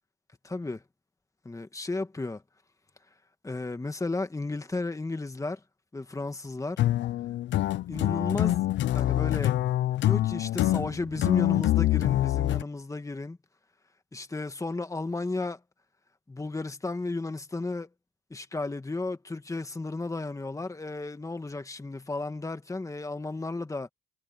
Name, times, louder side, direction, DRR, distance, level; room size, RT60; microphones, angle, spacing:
voice 1, 0.4-0.8 1.5-2.4 3.4-5.6 5.9-6.8 7.9-8.7 8.9-9.5 10.0-13.4 14.1-15.6 16.3-17.9 18.3-23.9, left 2 dB, 15° left, 1.9 m, -33 dB
sound 1, 6.8-12.6, left 14 dB, 65° left, 0.5 m, -25 dB
cardioid pair, 90°, 20 cm